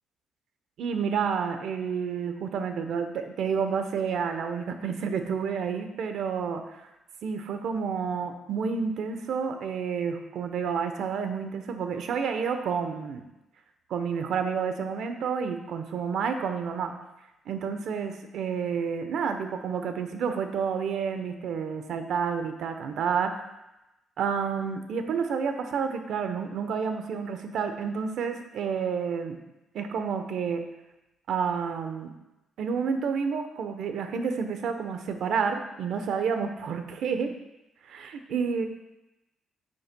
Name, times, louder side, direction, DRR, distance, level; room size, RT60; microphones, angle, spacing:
voice 1, 0.8-6.8 7.2-13.2 13.9-16.9 17.5-23.4 24.2-29.4 29.7-30.6 31.3-32.1 32.6-37.3 37.8-38.6, right 6 dB, 75° right, 7 dB, 0.9 m, -30 dB
9.5 x 8.6 x 2.3 m, 0.95 s
cardioid pair, 90°, 0 cm